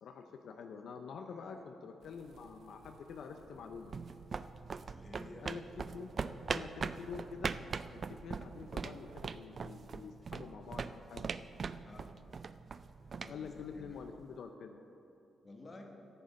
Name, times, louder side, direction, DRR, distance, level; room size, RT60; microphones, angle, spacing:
voice 1, 0.0-4.0 5.4-6.1 6.5-7.6 7.9-11.3 13.3-14.8, left 5 dB, 70° left, 5 dB, 0.6 m, -47 dB
voice 2, 1.3-1.6 4.9-5.5 11.7-12.1 13.1-13.5 13.7-14.0 15.4-15.9, left 2 dB, 30° left, 2 dB, 1.3 m, -53 dB
sound 1, 2.0-9.3, right 4 dB, 70° right, 0.9 m, -58 dB
sound 2, 3.5-14.3, right 5 dB, 40° right, 0.3 m, -42 dB
sound 3, 7.1-14.1, right 1 dB, ahead, 1.9 m, -69 dB
13.5 x 7.9 x 5.2 m, 2.8 s
cardioid pair, 130°, 0 cm